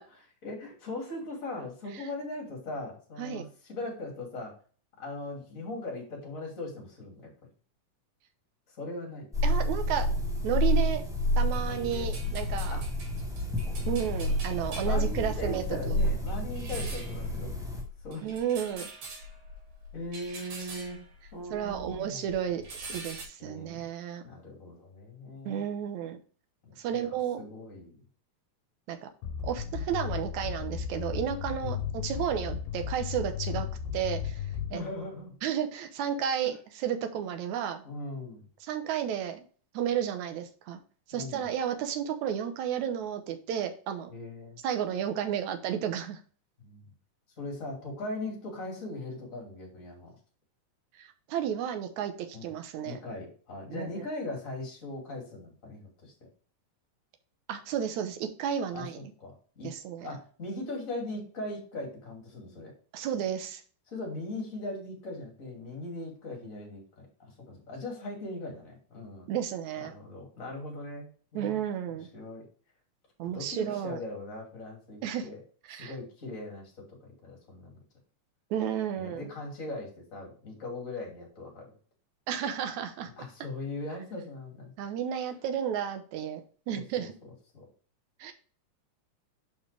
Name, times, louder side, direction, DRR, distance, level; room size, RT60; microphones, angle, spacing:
voice 1, 0.1-4.5 5.0-7.3 8.7-9.3 11.6-12.1 12.7-12.9 13.8-13.9 14.8-17.7 18.0-18.3 19.9-21.0 21.3-22.3 23.4-23.8 24.2-25.6 26.6-28.0 31.6-31.8 33.5-33.7 34.7-35.4 36.4-36.5 37.8-38.4 41.1-41.4 44.1-44.6 46.6-46.9 47.4-50.1 52.3-52.5 52.8-56.1 58.7-59.7 60.0-62.7 63.9-69.3 69.8-71.6 72.1-72.5 73.3-75.4 75.7-77.8 79.0-81.7 83.1-84.7 86.7-87.1 87.5-87.7, left 2 dB, 25° left, 0 dB, 2.7 m, -40 dB
sound 1, 9.3-17.8, equal, 5° right, 0.6 m, -29 dB
voice 2, 9.4-10.1 10.4-11.0 11.4-12.8 13.9-16.0 18.2-18.9 21.5-22.6 22.9-24.3 25.5-26.2 26.8-27.4 28.9-29.1 29.4-33.7 33.9-34.4 34.7-34.8 35.4-37.8 38.6-39.4 39.7-40.8 41.1-44.1 44.6-46.2 51.0-53.0 53.7-53.9 57.5-59.0 59.6-60.1 62.9-63.6 69.3-69.9 71.3-72.1 73.2-74.0 75.0-75.3 75.7-75.9 78.5-79.3 82.3-83.1 84.8-87.1 88.2-88.3, right 9 dB, 70° right, 8 dB, 2.1 m, -32 dB
sound 2, 11.2-22.0 22.3-23.2, left 1 dB, 90° right, 4.0 m, -42 dB
sound 3, 29.2-35.0, left 8 dB, 85° left, 2.3 m, -35 dB
6.8 x 5.6 x 3.4 m, 0.41 s
omnidirectional pair, 3.8 m